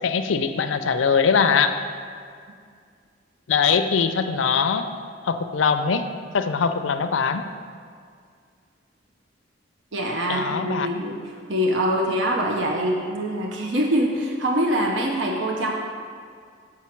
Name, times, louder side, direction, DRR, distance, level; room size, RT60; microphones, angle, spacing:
voice 1, 0.0-1.8 3.5-4.9 5.2-7.5 10.3-10.9, left 6 dB, 80° left, 9 dB, 0.5 m, -22 dB
voice 2, 9.9-11.2 11.5-15.7, equal, 70° right, 0 dB, 0.8 m, -24 dB
7.3 x 6.2 x 4.4 m, 2.2 s
head